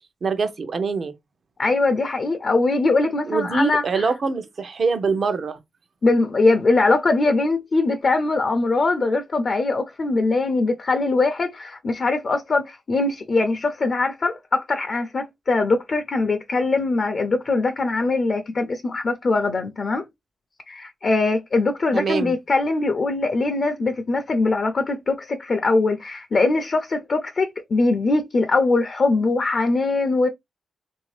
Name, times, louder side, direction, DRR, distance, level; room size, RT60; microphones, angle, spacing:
voice 1, 0.2-1.1 3.3-5.6 21.9-22.4, right 4 dB, 55° right, 0.7 m, -24 dB
voice 2, 1.6-4.1 6.0-20.0 20.7-30.3, left 3 dB, 50° left, 0.5 m, -21 dB
3.5 x 2.7 x 3.1 m
cardioid pair, 90°, 0 cm